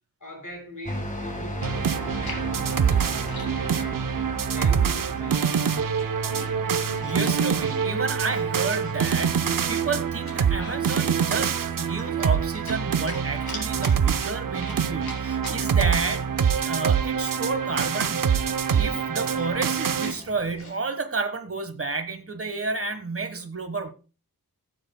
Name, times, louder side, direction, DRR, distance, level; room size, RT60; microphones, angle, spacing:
voice 1, 0.2-5.8, equal, 55° left, 7.2 m, -42 dB
sound 1, 0.9-20.6, left 1 dB, 20° left, 1.7 m, -41 dB
Chewing mastication, 1.6-3.9 4.4-4.8 5.1-7.2 7.6-9.7 10.1-11.0 11.4-12.8 13.1-16.1 16.4-16.5 16.7-20.8, left 2 dB, 80° left, 3.8 m, -43 dB
sound 2, 1.6-20.1, right 7 dB, 65° right, 0.7 m, -25 dB
voice 2, 7.0-18.5 18.7-23.9, right 4 dB, 40° right, 1.4 m, -31 dB
20.5 x 7.6 x 2.2 m
wide cardioid pair, 105°, 36 cm